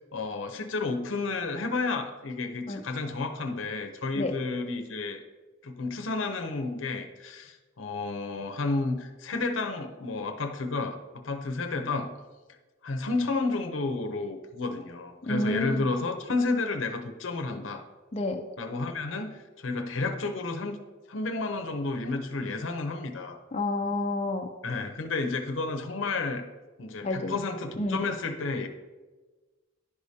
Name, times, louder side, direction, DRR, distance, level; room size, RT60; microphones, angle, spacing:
voice 1, 0.1-5.2 5.6-11.0 11.2-12.1 12.8-17.8 18.6-20.8 21.1-23.4 24.6-26.4 26.8-28.7, left 3 dB, 80° left, 6 dB, 0.7 m, -31 dB
voice 2, 15.2-15.9 18.1-18.4 23.5-24.5 27.0-27.4 27.8-28.0, left 2 dB, 35° left, 3 dB, 0.5 m, -29 dB
11.0 x 4.9 x 2.7 m, 1.3 s
head